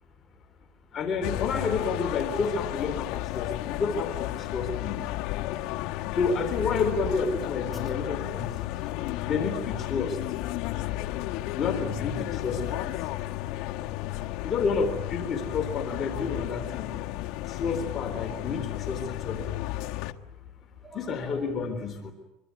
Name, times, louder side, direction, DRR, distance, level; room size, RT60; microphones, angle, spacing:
voice 1, 0.9-3.1 3.3-5.0 6.2-8.5 9.3-10.2 11.5-12.9 14.4-16.9 17.5-18.6 18.9-19.0 19.3-19.5 20.9-22.1, left 4 dB, 35° left, 5 dB, 3.8 m, -29 dB
sound 1, 1.2-20.1, left 16 dB, 65° left, 1.4 m, -33 dB
voice 2, 8.8-9.3 12.6-12.7 17.0-17.1 20.6-21.4, left 1 dB, ahead, 8 dB, 5.3 m, -49 dB
25.5 x 23.5 x 9.5 m, 0.92 s
cardioid pair, 135°, 0 cm